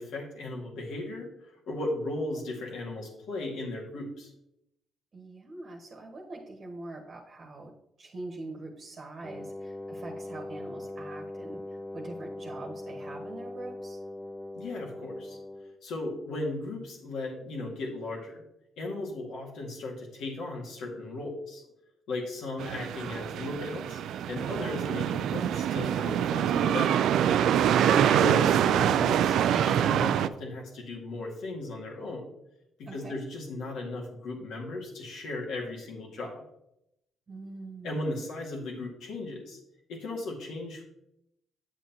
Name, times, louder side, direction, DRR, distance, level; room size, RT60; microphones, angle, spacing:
voice 1, 0.0-4.3 14.6-15.4 15.8-18.4 18.8-21.6 22.1-24.0 24.3-27.0 28.1-32.3 32.8-36.4 37.8-39.6 39.9-40.8, left 2 dB, 80° left, -1 dB, 2.1 m, -36 dB
voice 2, 5.1-7.7 8.0-14.0 26.3-26.7 32.8-33.2 37.3-38.2, right 2 dB, 45° right, 1 dB, 1.2 m, -43 dB
Wind instrument woodwind instrument, 9.2-15.8, left 1 dB, 15° left, 0.5 m, -41 dB
sound 1, 22.6-30.3, right 9 dB, 80° right, 0.3 m, -25 dB
8.1 x 7.4 x 3.0 m, 0.83 s
cardioid pair, 90°, 0 cm